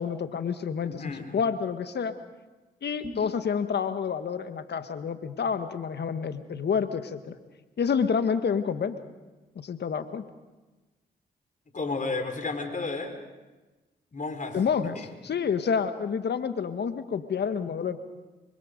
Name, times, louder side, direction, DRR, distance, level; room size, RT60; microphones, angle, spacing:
voice 1, 0.0-2.1 2.8-7.3 7.8-9.0 9.5-10.2 14.5-18.0, left 6 dB, 65° left, 10 dB, 1.6 m, -29 dB
voice 2, 0.8-1.4 3.0-3.1 11.7-13.1 14.1-14.6 14.9-15.1, left 3 dB, 45° left, 6 dB, 4.4 m, -32 dB
26.0 x 24.0 x 5.3 m, 1.2 s
supercardioid pair, 45°, 19 cm